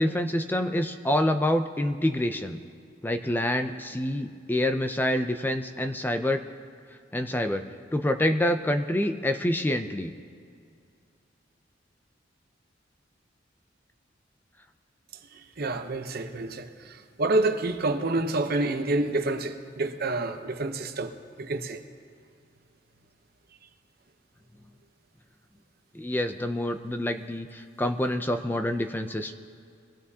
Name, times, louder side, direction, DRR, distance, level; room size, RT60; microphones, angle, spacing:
voice 1, 0.0-2.6 3.0-6.4 7.1-7.6 7.9-10.1 25.9-29.3, left 1 dB, 10° left, 0.4 m, -27 dB
voice 2, 15.3-21.8, right 2 dB, 55° right, 0.8 m, -28 dB
22.5 x 15.0 x 2.8 m
head